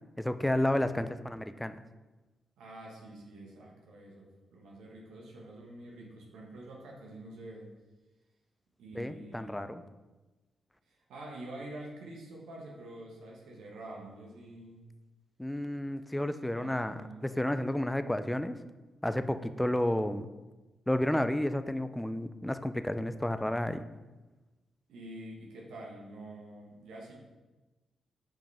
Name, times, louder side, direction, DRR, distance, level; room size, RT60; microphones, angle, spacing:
voice 1, 0.2-1.8 8.9-9.8 15.4-16.9 17.2-18.6 19.0-20.3 20.9-23.8, left 1 dB, 10° left, 11 dB, 0.5 m, -31 dB
voice 2, 2.6-7.7 8.8-9.7 10.9-14.8 16.5-17.6 24.9-27.1, right 1 dB, 80° right, -2 dB, 1.3 m, -47 dB
7.6 x 5.2 x 3.5 m, 1.2 s
hypercardioid pair, 45°, 0 cm